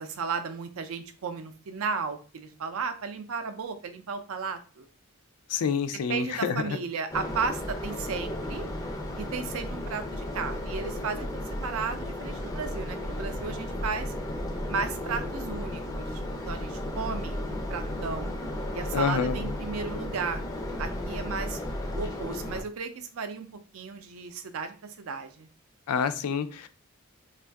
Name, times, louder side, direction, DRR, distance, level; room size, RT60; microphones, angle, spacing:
voice 1, 0.0-4.9 5.9-8.6 9.2-14.1 14.7-18.4 18.7-20.4 20.8-21.6 21.9-23.5 23.7-25.5, right 5 dB, 70° right, 9 dB, 0.4 m, -34 dB
voice 2, 5.5-6.8 18.9-19.5 25.9-26.7, left 6 dB, 85° left, 11 dB, 0.4 m, -28 dB
sound 1, 7.1-22.6, left 1 dB, 15° left, 0.4 m, -34 dB
2.6 x 2.4 x 3.3 m, 0.38 s
head